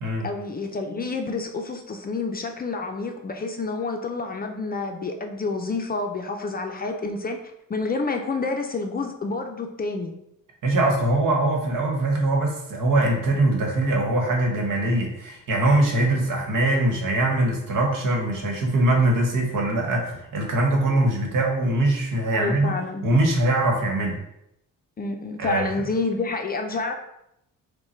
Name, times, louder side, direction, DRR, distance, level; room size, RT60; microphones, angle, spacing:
voice 1, 0.2-7.4 7.7-10.1 22.3-23.1 25.0-26.9, left 3 dB, 30° left, 4 dB, 0.4 m, -28 dB
voice 2, 10.6-22.7 23.0-24.2 25.4-25.7, right 2 dB, 75° right, 1 dB, 1.3 m, -22 dB
5.5 x 2.2 x 4.3 m, 0.81 s
cardioid pair, 140°, 33 cm